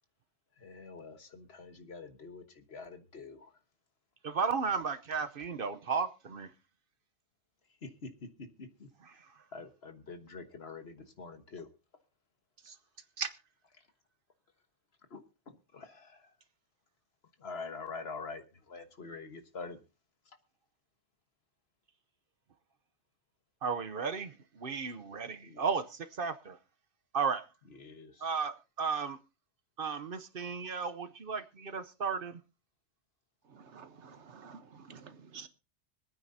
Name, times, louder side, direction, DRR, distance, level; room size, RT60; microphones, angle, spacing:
voice 1, 0.5-3.6 4.8-5.5 7.7-9.2 9.5-11.7 13.7-13.9 15.1-16.4 17.4-19.8 20.3-20.4 25.4-25.6 27.6-28.3, left 4 dB, 60° left, 1.6 m, -46 dB
voice 2, 4.2-6.5 12.7-12.8 13.2-13.3 23.6-26.6 27.1-27.4 28.2-29.2 29.8-32.4, right 5 dB, 55° right, 1.0 m, -34 dB
voice 3, 33.5-35.5, right 6 dB, 75° right, 1.4 m, -51 dB
25.0 x 9.2 x 2.7 m
omnidirectional pair, 1.2 m